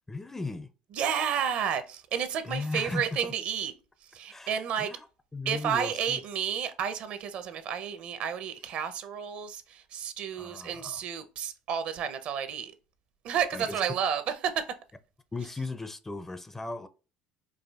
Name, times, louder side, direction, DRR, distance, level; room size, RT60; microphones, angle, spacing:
voice 1, 0.1-0.7 2.4-3.3 4.3-5.0 5.3-6.2 10.4-11.0 13.5-13.8 15.3-16.9, left 3 dB, 15° left, 0.4 m, -36 dB
voice 2, 0.9-3.7 4.1-4.9 5.5-12.7 13.2-14.6, right 8 dB, 60° right, 0.6 m, -31 dB
4.8 x 2.4 x 2.3 m
supercardioid pair, 85°, 2 cm